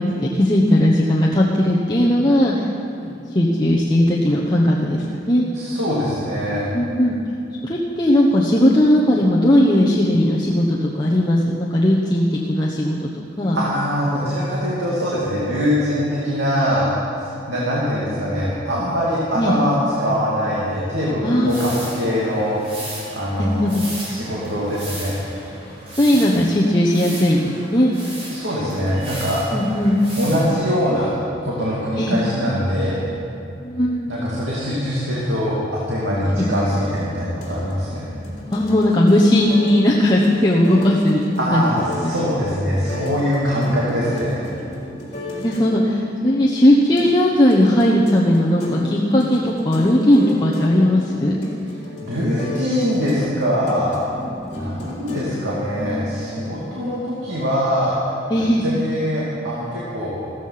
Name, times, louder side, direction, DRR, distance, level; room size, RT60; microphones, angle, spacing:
voice 1, 0.0-2.5 3.0-5.4 6.7-7.2 7.6-13.0 13.4-13.6 19.3-19.6 21.2-21.8 23.2-23.8 26.0-27.9 29.5-30.0 32.0-32.2 33.6-34.3 36.4-36.5 38.5-41.7 42.0-42.1 45.3-51.3 54.1-54.5 56.6-56.7 58.3-58.6, left 1 dB, 25° left, -4 dB, 1.1 m, -17 dB
voice 2, 5.5-6.6 13.5-16.9 17.1-23.7 24.0-25.2 28.3-29.4 30.2-31.1 31.4-33.0 34.1-38.1 41.4-44.4 52.0-54.1 54.5-60.2, equal, 85° right, -7 dB, 2.7 m, -23 dB
sound 1, 21.4-30.8, right 1 dB, 30° right, 3.5 m, -36 dB
sound 2, 36.7-56.6, left 1 dB, 40° left, 3.7 m, -33 dB
15.0 x 14.5 x 5.8 m, 2.7 s
head